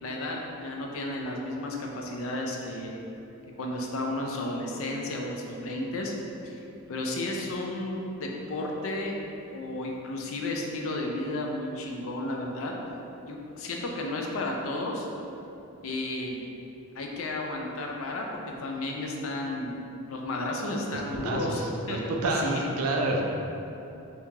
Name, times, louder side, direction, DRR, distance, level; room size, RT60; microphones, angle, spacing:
voice 1, 0.0-3.0 3.6-6.1 6.4-6.6 6.9-9.1 9.5-12.7 13.2-15.1 15.8-16.4 16.9-19.8 20.1-22.6, left 1 dB, 60° left, 0 dB, 0.4 m, -33 dB
voice 2, 21.2-21.5 21.9-23.3, right 2 dB, 75° right, 1 dB, 0.4 m, -28 dB
2.9 x 2.7 x 3.6 m, 2.8 s
head